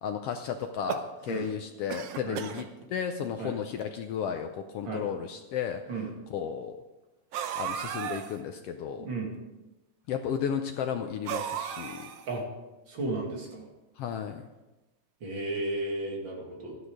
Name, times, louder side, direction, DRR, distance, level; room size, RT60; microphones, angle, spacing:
voice 1, 0.0-5.8 6.3-6.8 7.5-9.1 10.1-12.1 14.0-14.5, left 8 dB, 90° left, 6 dB, 1.3 m, -33 dB
sound 1, 0.6-1.5 1.9-2.7 3.5-3.6 3.8-3.9 4.8-4.9 7.3-8.4 11.2-12.4, right 9 dB, 75° right, 1.4 m, -35 dB
voice 2, 9.0-9.4 12.3-12.4 12.9-13.7 15.2-16.8, right 2 dB, 40° right, 0 dB, 2.6 m, -34 dB
12.5 x 10.5 x 4.8 m, 1.1 s
omnidirectional pair, 3.5 m